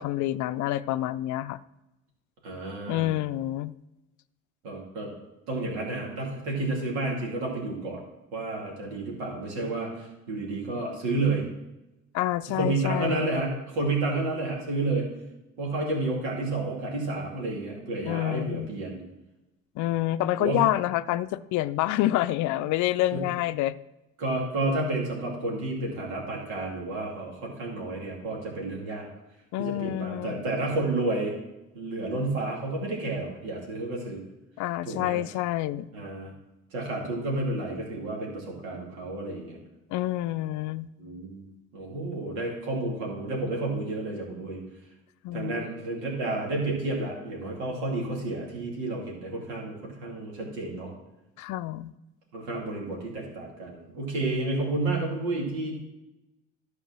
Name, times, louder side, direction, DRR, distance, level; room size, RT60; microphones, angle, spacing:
voice 1, 0.0-1.6 2.9-3.7 12.1-13.3 18.0-18.7 19.8-23.7 29.5-30.4 34.6-35.9 39.9-40.9 45.2-45.6 51.4-51.9, left 15 dB, 65° left, 15 dB, 0.5 m, -28 dB
voice 2, 2.4-3.1 4.6-5.1 5.5-8.0 8.3-11.5 12.5-15.1 15.6-19.0 20.4-20.6 24.2-29.1 29.6-31.3 31.7-34.2 34.9-35.2 35.9-36.3 36.7-39.6 41.0-41.5 41.7-44.6 45.3-50.9 52.3-55.7, right 2 dB, 80° right, -2 dB, 2.5 m, -31 dB
12.0 x 4.8 x 6.1 m, 0.97 s
hypercardioid pair, 55°, 32 cm